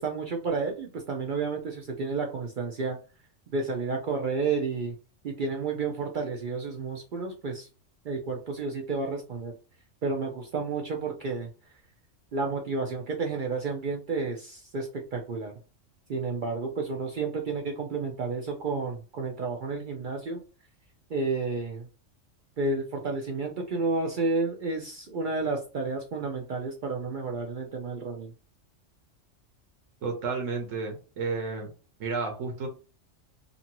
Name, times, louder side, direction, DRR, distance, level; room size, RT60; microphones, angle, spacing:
voice 1, 0.0-3.0 3.5-4.9 5.2-7.7 8.0-9.5 10.0-11.5 12.3-15.5 16.1-20.4 21.1-21.9 22.6-28.3, right 4 dB, 60° right, 2 dB, 0.5 m, -31 dB
voice 2, 30.0-31.7 32.0-32.7, right 4 dB, 80° right, 3 dB, 1.1 m, -31 dB
2.6 x 2.6 x 2.8 m, 0.36 s
omnidirectional pair, 1.3 m